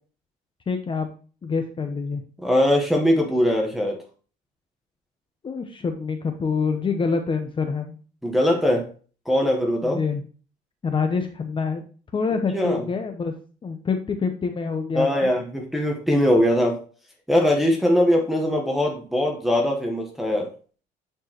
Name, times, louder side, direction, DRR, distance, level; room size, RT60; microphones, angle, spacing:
voice 1, 0.7-1.1 1.4-2.2 5.4-8.0 9.8-10.2 10.8-11.8 12.1-13.3 13.6-15.3, left 5 dB, 30° left, 6 dB, 0.8 m, -26 dB
voice 2, 2.4-4.0 8.2-8.9 9.3-10.0 12.5-12.8 14.9-16.8 17.3-20.5, equal, ahead, 0 dB, 1.2 m, -21 dB
9.4 x 4.5 x 3.0 m, 0.38 s
cardioid pair, 110°, 17 cm